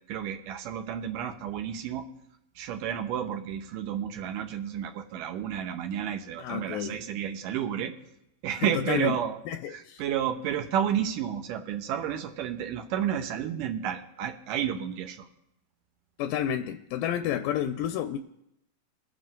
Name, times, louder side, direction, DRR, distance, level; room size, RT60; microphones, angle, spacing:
voice 1, 0.1-2.1 2.6-7.9 8.4-9.4 9.7-15.3, right 9 dB, 80° right, 5 dB, 2.4 m, -31 dB
voice 2, 6.4-7.0 8.7-9.2 9.5-10.0 16.2-18.2, left 10 dB, 85° left, 9 dB, 2.2 m, -30 dB
21.5 x 7.5 x 3.7 m, 0.81 s
omnidirectional pair, 3.9 m